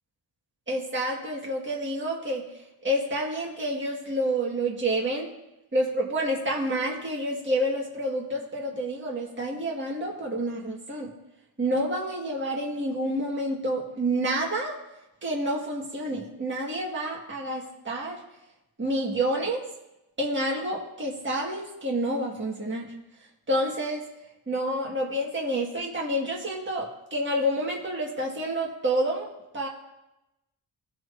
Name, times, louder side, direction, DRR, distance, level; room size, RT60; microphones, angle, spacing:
voice 1, 0.7-2.4 2.8-5.3 5.7-11.1 11.6-14.7 15.2-18.2 18.8-19.6 20.2-22.9 23.5-24.0 24.5-29.3 29.5-29.7, right 1 dB, 25° right, -3 dB, 1.6 m, -28 dB
17.5 x 6.1 x 2.6 m, 0.94 s
wide cardioid pair, 150°, 46 cm